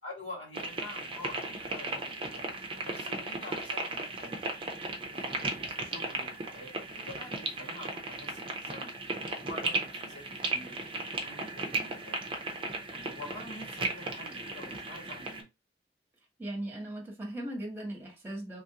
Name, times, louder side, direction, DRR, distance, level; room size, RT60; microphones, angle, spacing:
voice 1, 0.0-2.4 2.8-4.4 5.1-12.3 12.9-15.5, left 1 dB, 85° left, 1.8 m, -47 dB
sound 1, 0.5-15.4, right 2 dB, 30° right, 0.5 m, -36 dB
voice 2, 16.4-18.6, right 1 dB, 10° right, 1.0 m, -38 dB
3.1 x 2.5 x 2.8 m
head